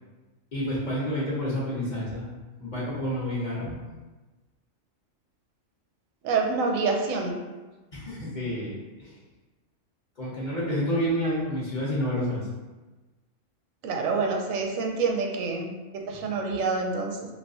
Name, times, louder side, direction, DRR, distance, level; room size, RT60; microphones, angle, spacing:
voice 1, 0.5-2.3 2.6-3.8 7.9-9.1 10.2-12.5 16.1-16.2, equal, 40° left, -7 dB, 0.8 m, -29 dB
voice 2, 6.2-7.4 13.8-17.2, right 4 dB, 90° right, 1 dB, 1.0 m, -27 dB
3.2 x 2.9 x 2.7 m, 1.2 s
omnidirectional pair, 1.3 m